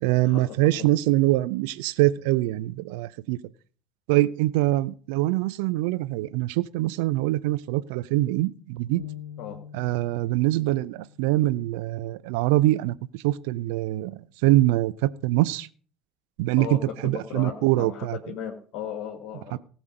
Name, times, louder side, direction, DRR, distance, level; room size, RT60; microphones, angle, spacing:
voice 1, 0.0-3.4 4.1-9.0 9.7-15.7 16.4-18.2 19.5-19.6, right 17 dB, 60° right, 0.6 m, -24 dB
sound 1, 9.0-12.5, left 10 dB, 85° left, 1.0 m, -45 dB
voice 2, 16.6-19.6, left 8 dB, 50° left, 1.7 m, -36 dB
18.0 x 6.2 x 5.1 m
figure-of-eight pair, 65°, 0 cm